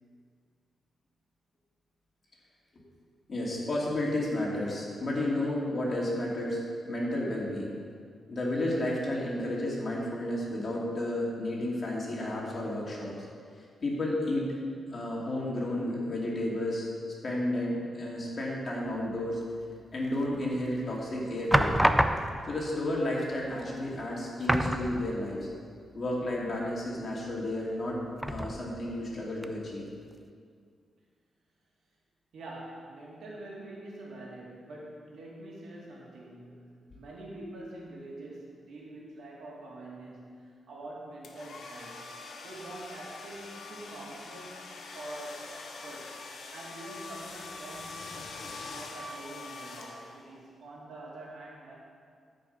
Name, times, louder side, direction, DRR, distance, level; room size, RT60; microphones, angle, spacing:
voice 1, 3.3-7.8 8.3-13.1 13.8-14.6 14.9-16.9 17.2-19.4 19.9-21.8 22.5-25.5 25.9-28.0 28.3-29.9, left 1 dB, 45° left, -4 dB, 2.7 m, -32 dB
sound 1, 20.3-20.7 21.5-22.6 23.5-23.6 23.9-24.1 24.4-25.4 25.8-25.9 28.2-28.9 29.4-29.5, equal, 5° right, 0.5 m, -27 dB
voice 2, 32.3-42.0 42.4-46.2 46.5-51.7, right 1 dB, 75° right, -4 dB, 2.4 m, -45 dB
sound 2, 41.2-50.4, left 3 dB, 70° left, 1.2 m, -44 dB
13.0 x 5.3 x 5.5 m, 2.2 s
cardioid pair, 95°, 0 cm